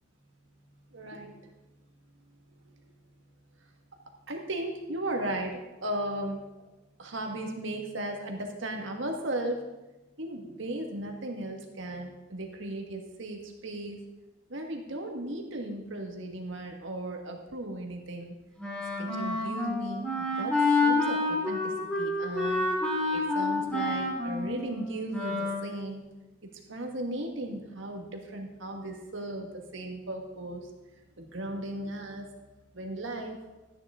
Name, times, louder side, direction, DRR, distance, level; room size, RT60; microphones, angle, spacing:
voice 1, 0.9-1.3 2.3-2.9 4.3-6.7 7.0-9.6 10.2-14.0 14.5-18.3 19.0-20.6 20.8-22.6 23.1-26.0 26.4-30.7 31.2-32.3 32.7-33.4, right 1 dB, 75° right, 3 dB, 1.6 m, -36 dB
Wind instrument woodwind instrument, 18.6-25.7, left 2 dB, 5° left, 2.1 m, -28 dB
13.5 x 9.3 x 3.7 m, 1.1 s
head